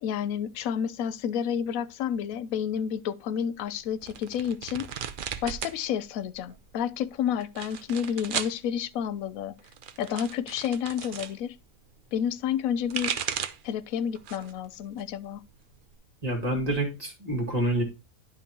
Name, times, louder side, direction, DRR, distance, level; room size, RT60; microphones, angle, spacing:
voice 1, 0.0-4.9 5.4-9.6 10.0-11.6 12.1-13.2 13.6-15.4, left 8 dB, 70° left, 1.0 m, -30 dB
sound 1, 4.0-5.8 6.1-6.7 7.4-8.6 9.6-11.3 12.6-13.7 14.1-14.6 15.0-15.9, right 8 dB, 65° right, 0.5 m, -35 dB
voice 2, 16.2-17.8, right 1 dB, 25° right, 2.3 m, -27 dB
10.0 x 5.9 x 2.9 m
omnidirectional pair, 1.6 m